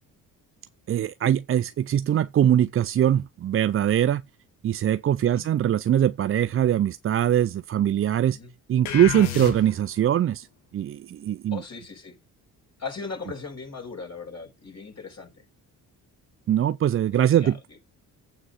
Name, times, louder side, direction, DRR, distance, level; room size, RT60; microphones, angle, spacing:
voice 1, 0.9-4.2 4.6-8.4 8.7-10.5 10.7-11.6 16.5-17.6, right 10 dB, 35° right, 0.4 m, -22 dB
sound 1, 8.8-10.0, left 9 dB, 85° left, 1.6 m, -31 dB
voice 2, 11.5-12.1 12.8-15.4 17.1-17.8, left 4 dB, 35° left, 5.9 m, -38 dB
8.7 x 4.8 x 5.5 m
hypercardioid pair, 45°, 45 cm